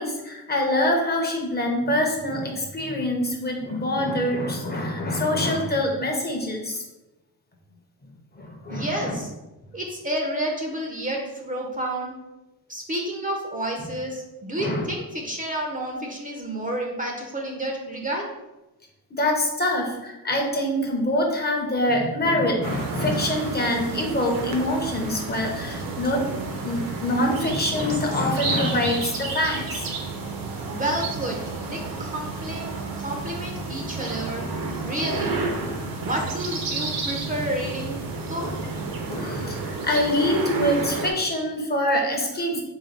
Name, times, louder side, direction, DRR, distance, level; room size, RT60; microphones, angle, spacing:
voice 1, 0.0-6.8 8.3-9.1 14.6-14.8 19.1-26.2 26.6-29.9 38.4-38.6 38.9-42.6, left 1 dB, 25° left, 1 dB, 0.6 m, -25 dB
voice 2, 8.7-9.3 9.7-12.1 12.7-18.2 30.7-34.4 34.8-35.4 36.0-38.5, right 1 dB, 20° right, 0 dB, 0.5 m, -30 dB
sound 1, 22.6-41.1, right 3 dB, 65° right, 0.8 m, -31 dB
3.9 x 2.2 x 4.4 m, 1.0 s
cardioid pair, 130°, 37 cm